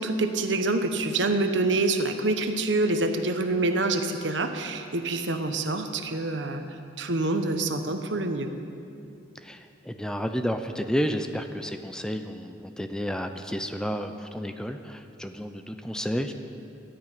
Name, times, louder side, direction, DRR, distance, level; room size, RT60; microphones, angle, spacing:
voice 1, 0.0-6.6 7.0-8.5, right 2 dB, 80° right, 7 dB, 1.1 m, -26 dB
voice 2, 9.4-16.3, equal, 5° left, 7 dB, 0.6 m, -31 dB
12.5 x 10.0 x 9.0 m, 2.5 s
head